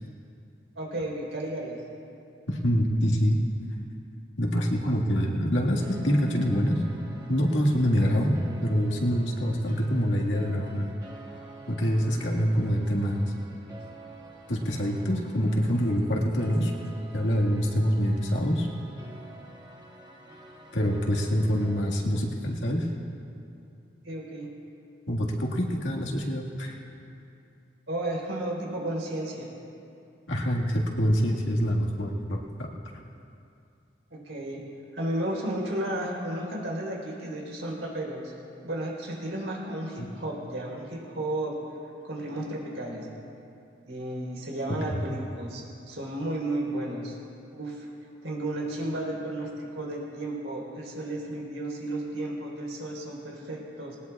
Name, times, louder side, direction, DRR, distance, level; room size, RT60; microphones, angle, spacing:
voice 1, 0.8-1.8 24.0-24.5 27.9-29.5 34.1-34.6 34.9-38.3 38.6-41.6 42.0-43.1 43.9-47.2 47.5-47.9 48.2-54.0, right 1 dB, 80° right, -2 dB, 3.8 m, -33 dB
voice 2, 2.5-3.4 4.4-6.8 7.3-10.9 11.7-13.3 14.5-16.7 17.1-18.7 20.7-22.9 25.1-26.8 30.3-32.7 40.0-40.1 44.7-45.0, equal, 80° left, -1 dB, 1.8 m, -25 dB
sound 1, 5.8-21.9, right 2 dB, 20° right, 1.3 m, -48 dB
20.5 x 19.0 x 2.4 m, 2.7 s
head